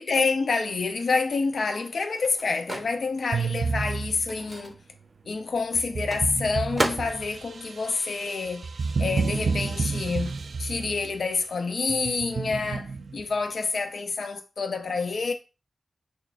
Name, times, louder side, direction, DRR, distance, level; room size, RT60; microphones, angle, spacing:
voice 1, 0.0-4.8 5.3-8.7 9.0-15.3, left 4 dB, 80° left, 0.6 m, -28 dB
Microwave oven, 0.8-9.0 9.2-11.1, right 1 dB, 25° right, 0.6 m, -37 dB
sound 1, 3.3-4.5 5.7-11.1 11.9-13.2, right 4 dB, 80° right, 0.3 m, -30 dB
6.2 x 2.4 x 2.5 m
wide cardioid pair, 120°, 0 cm